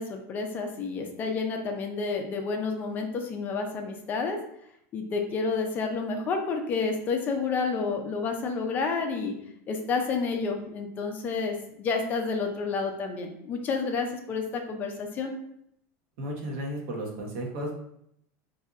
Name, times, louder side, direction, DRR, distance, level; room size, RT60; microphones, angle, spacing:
voice 1, 0.0-4.4 4.9-9.3 9.7-15.3, left 4 dB, 25° left, 4 dB, 0.5 m, -30 dB
voice 2, 16.2-17.7, right 1 dB, 55° right, 0 dB, 1.0 m, -33 dB
4.0 x 2.6 x 2.5 m, 0.73 s
supercardioid pair, 175°, 8 cm